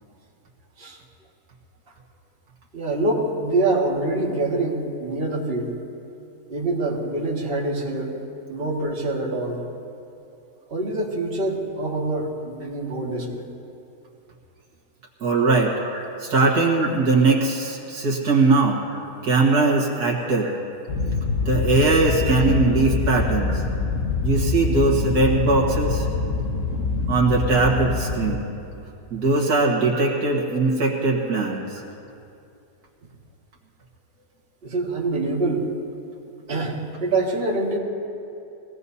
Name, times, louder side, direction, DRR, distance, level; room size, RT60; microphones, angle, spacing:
voice 1, 2.7-5.7 6.5-8.1 8.5-9.6 10.7-13.4 34.6-35.7 36.5-37.8, right 2 dB, 35° right, -4 dB, 2.0 m, -25 dB
voice 2, 15.2-15.8 16.2-18.8 19.2-20.5 21.5-23.6 24.2-26.1 27.1-28.4 29.1-31.8, right 3 dB, 80° right, -3 dB, 2.2 m, -20 dB
sound 1, 20.9-28.4, left 4 dB, 55° left, 1.2 m, -25 dB
22.5 x 17.0 x 2.8 m, 2.7 s
omnidirectional pair, 1.7 m